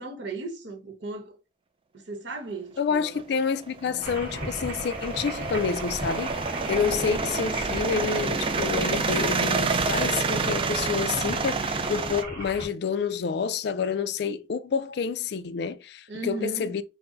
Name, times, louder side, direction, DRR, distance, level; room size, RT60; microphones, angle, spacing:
voice 1, 0.0-1.3 2.1-3.2 16.1-16.7, right 2 dB, 70° right, 1.1 m, -36 dB
voice 2, 2.8-6.3 6.7-16.8, left 6 dB, 60° left, 0.4 m, -28 dB
sound 1, 3.2-12.2, right 4 dB, 30° right, 0.4 m, -28 dB
sound 2, 4.0-12.7, right 1 dB, 55° right, 1.6 m, -36 dB
4.5 x 2.1 x 3.8 m
head